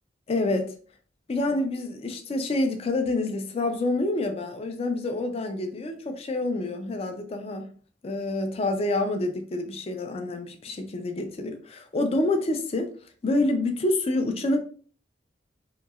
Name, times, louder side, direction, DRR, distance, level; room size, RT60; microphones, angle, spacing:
voice 1, 0.3-0.7 1.3-7.7 8.0-12.9 13.2-14.6, left 2 dB, 30° left, 0.4 m, -27 dB
2.9 x 2.7 x 2.3 m
head